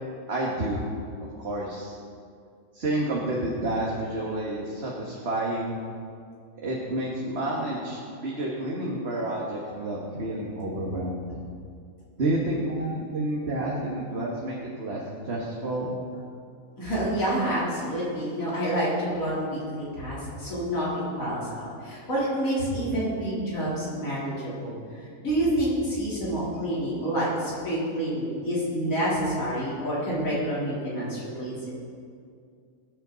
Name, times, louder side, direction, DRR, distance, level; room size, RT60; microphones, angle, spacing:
voice 1, 0.3-0.8 1.2-1.9 2.7-5.8 6.6-11.4 12.2-15.9, right 1 dB, 45° right, -4 dB, 1.7 m, -30 dB
voice 2, 16.8-24.8 25.2-31.7, right 1 dB, 70° left, -9 dB, 4.0 m, -28 dB
20.0 x 9.0 x 4.0 m, 2.3 s
omnidirectional pair, 1.5 m